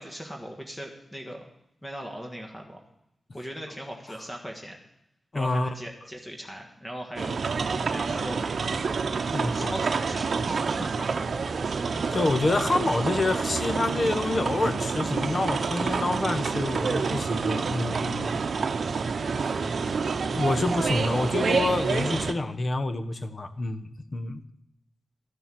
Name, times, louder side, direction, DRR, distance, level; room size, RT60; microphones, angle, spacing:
voice 1, 0.0-1.5 1.8-2.8 3.3-4.8 5.3-7.5 7.9-8.5 9.5-11.3 11.9-12.2, equal, 15° left, 2 dB, 1.5 m, -40 dB
voice 2, 5.3-5.7 9.3-9.7 11.8-18.4 19.9-20.0 20.3-24.4, left 2 dB, 40° left, 10 dB, 0.9 m, -27 dB
sound 1, 7.2-22.3, right 5 dB, 65° right, 0.8 m, -28 dB
12.5 x 7.0 x 7.6 m, 0.81 s
wide cardioid pair, 95°, 0 cm